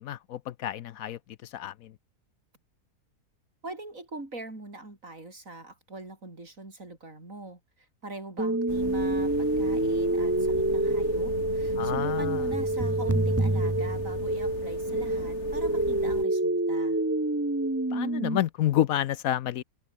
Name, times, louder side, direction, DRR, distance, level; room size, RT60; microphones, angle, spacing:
voice 1, 0.0-1.9 11.8-12.5 17.9-19.6, left 12 dB, 70° left, 1.1 m, -29 dB
voice 2, 3.6-7.6 8.0-17.0, right 2 dB, 60° right, 5.8 m, -42 dB
sound 1, 8.4-18.4, right 2 dB, 10° right, 0.9 m, -27 dB
sound 2, 8.7-16.2, left 5 dB, 50° left, 1.9 m, -39 dB
omnidirectional pair, 1.6 m